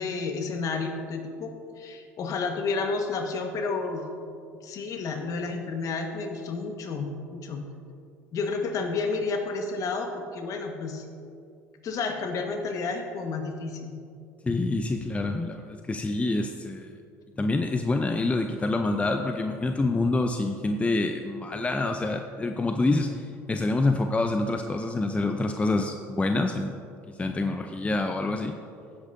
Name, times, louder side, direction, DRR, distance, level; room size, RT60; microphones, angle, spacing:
voice 1, 0.0-4.0 4.6-7.6 8.3-11.0 11.8-13.9, left 4 dB, 50° left, 4 dB, 1.5 m, -31 dB
voice 2, 14.4-16.9 17.4-26.8 27.2-28.5, left 2 dB, 15° left, 5 dB, 0.6 m, -27 dB
16.0 x 8.3 x 2.7 m, 2.4 s
hypercardioid pair, 70°, 7 cm